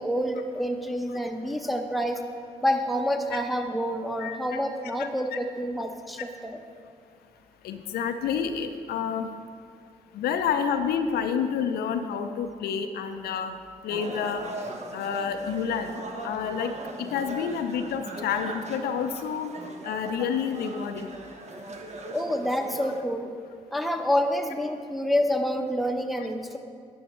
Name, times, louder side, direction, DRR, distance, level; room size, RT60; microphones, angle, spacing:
voice 1, 0.0-2.2 2.6-6.6 22.1-23.3 23.7-26.6, equal, ahead, 3 dB, 0.9 m, -28 dB
voice 2, 5.0-5.4 7.6-9.3 10.1-13.6 13.8-14.4 14.9-16.7 17.0-19.5 19.8-21.1, left 7 dB, 75° left, 8 dB, 0.5 m, -29 dB
sound 1, 13.9-23.0, right 2 dB, 45° right, 1.0 m, -40 dB
10.5 x 7.0 x 3.0 m, 2.1 s
supercardioid pair, 50°, 16 cm